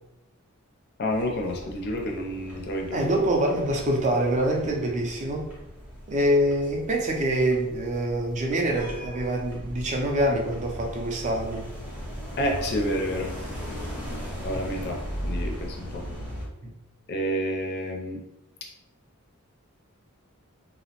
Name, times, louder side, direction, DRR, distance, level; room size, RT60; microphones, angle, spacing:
voice 1, 1.0-3.0 12.4-13.3 14.4-16.0 17.1-18.2, equal, 50° left, 2 dB, 0.4 m, -29 dB
sound 1, 1.1-16.4, equal, 5° right, 0.7 m, -38 dB
voice 2, 2.9-5.5 6.1-11.7 16.6-16.7, right 1 dB, 35° right, 1 dB, 0.4 m, -25 dB
2.7 x 2.0 x 2.8 m, 0.89 s
head